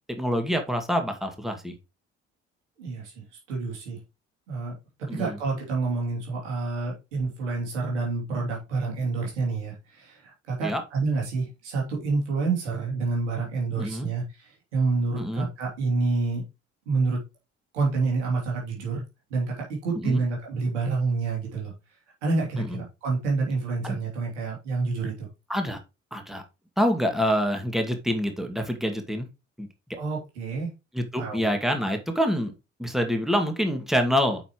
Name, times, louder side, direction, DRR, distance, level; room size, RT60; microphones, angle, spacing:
voice 1, 0.2-1.7 5.1-5.4 10.6-10.8 13.8-14.1 15.2-15.5 20.0-20.2 22.6-22.8 23.8-24.0 25.5-25.8 26.1-26.4 26.8-29.3 29.6-29.7 30.9-32.5 32.8-34.4, equal, ahead, 5 dB, 2.2 m, -26 dB
voice 2, 2.8-4.0 4.5-4.7 5.0-16.4 16.8-17.2 17.7-19.0 19.3-21.7 22.2-25.3 30.0-30.7 31.2-31.6, right 3 dB, 85° right, -2 dB, 3.2 m, -28 dB
9.0 x 5.7 x 3.1 m, 0.26 s
hypercardioid pair, 50°, 35 cm